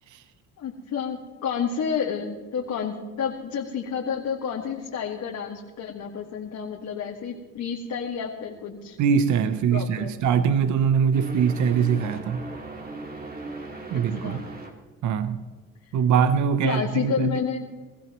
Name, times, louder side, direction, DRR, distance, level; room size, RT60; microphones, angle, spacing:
voice 1, 0.6-9.0 9.7-10.1 13.9-14.5 15.8-15.9 16.6-17.7, left 7 dB, 70° left, -2 dB, 1.8 m, -30 dB
voice 2, 9.0-12.4 13.9-14.4 15.0-15.4 15.9-17.4, right 7 dB, 75° right, 12 dB, 0.8 m, -22 dB
sound 1, 11.1-14.7, right 2 dB, 30° right, 2.4 m, -37 dB
22.5 x 15.5 x 3.1 m, 1.3 s
cardioid pair, 90°, 30 cm